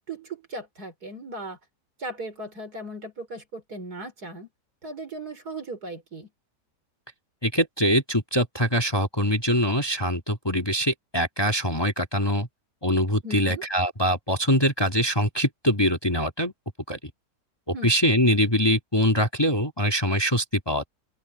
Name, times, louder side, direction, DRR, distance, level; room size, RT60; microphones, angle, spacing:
voice 1, 0.0-1.6 2.0-4.5 4.8-6.3 13.2-13.6 17.7-17.9, right 2 dB, 65° right, 4.9 m, -37 dB
voice 2, 7.4-12.5 12.8-16.5 16.9-17.0 17.8-20.9, equal, 15° left, 1.8 m, -23 dB
open air
omnidirectional pair, 1.8 m